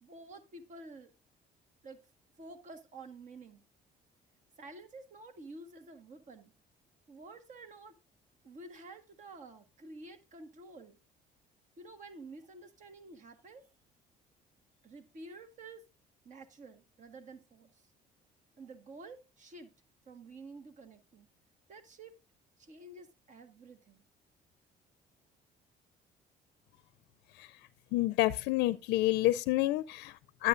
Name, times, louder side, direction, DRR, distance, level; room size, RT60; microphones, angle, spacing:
voice 1, 0.0-1.1 1.8-2.0 2.4-3.6 4.6-6.5 7.1-7.9 8.4-11.0 11.8-13.7 14.8-15.8 16.2-17.7 18.6-19.7 20.1-21.3 21.7-22.2 22.6-24.0, right 2 dB, 45° right, 1.5 m, -50 dB
voice 2, 27.9-30.5, left 17 dB, 85° left, 0.4 m, -29 dB
10.5 x 8.6 x 2.5 m
cardioid pair, 110°, 17 cm